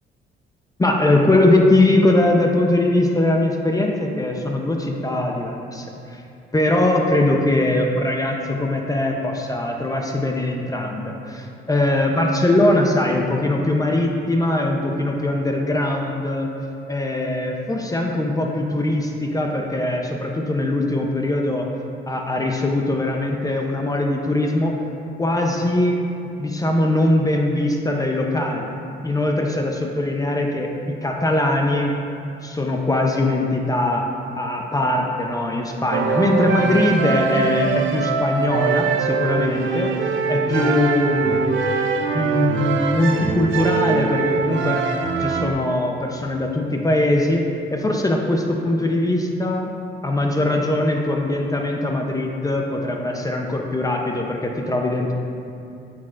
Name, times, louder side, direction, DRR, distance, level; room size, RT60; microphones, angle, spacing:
voice 1, 0.8-5.9 6.1-6.2 6.5-16.5 16.9-21.7 22.1-24.7 25.2-26.0 26.4-28.7 29.0-31.9 32.4-34.0 34.4-41.6 42.1-44.8 45.2-47.4 47.7-49.7 50.0-55.1, left 1 dB, 15° left, 1 dB, 0.6 m, -21 dB
sound 1, 35.9-45.5, right 5 dB, 75° right, 0.6 m, -22 dB
8.4 x 6.3 x 2.5 m, 2.5 s
cardioid pair, 90°, 20 cm